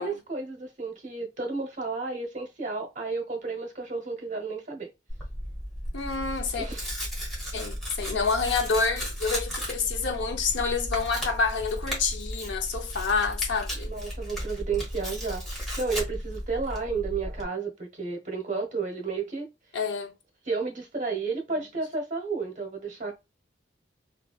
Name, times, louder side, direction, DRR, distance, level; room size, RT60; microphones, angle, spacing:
voice 1, 0.0-4.9 6.6-6.9 13.8-19.5 20.4-23.1, right 4 dB, 45° right, 0.9 m, -32 dB
Tearing, 5.1-17.4, equal, ahead, 1.3 m, -35 dB
voice 2, 5.9-6.7 7.5-13.9 19.7-20.1, left 4 dB, 85° left, 0.7 m, -28 dB
3.3 x 2.4 x 2.4 m
head